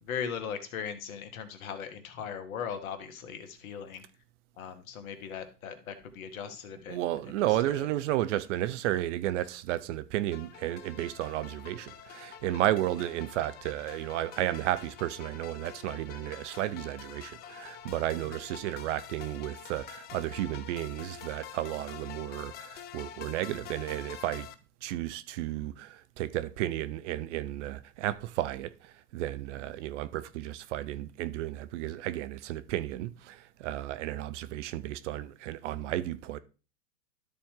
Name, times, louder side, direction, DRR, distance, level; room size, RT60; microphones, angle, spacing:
voice 1, 0.0-4.0 4.6-7.9 18.2-18.3, left 7 dB, 60° left, 1.7 m, -39 dB
voice 2, 6.9-24.5 24.8-36.4, right 14 dB, 50° right, 0.7 m, -33 dB
sound 1, 10.3-24.5, left 10 dB, 20° left, 0.5 m, -47 dB
12.5 x 4.3 x 3.8 m
hypercardioid pair, 105°, 46 cm